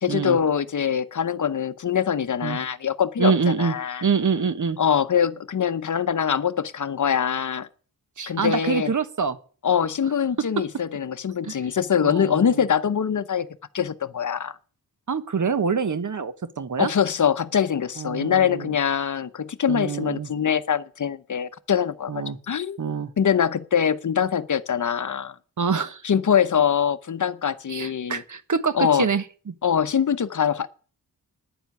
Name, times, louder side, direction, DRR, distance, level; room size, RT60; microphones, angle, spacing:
voice 1, 0.0-4.1 4.8-7.7 8.3-8.9 9.6-13.5 13.7-14.6 16.8-22.8 23.2-25.4 26.0-28.2 28.7-29.1 29.6-30.7, left 8 dB, 50° left, 0.8 m, -23 dB
voice 2, 3.2-3.7 4.0-4.8 8.2-9.4 11.4-11.5 12.0-12.6 15.1-16.9 18.0-18.7 19.7-20.3 22.1-22.4 22.8-23.1 25.6-26.0 27.7-29.5, right 5 dB, 50° right, 1.3 m, -25 dB
10.0 x 7.3 x 9.4 m
cardioid pair, 70°, 38 cm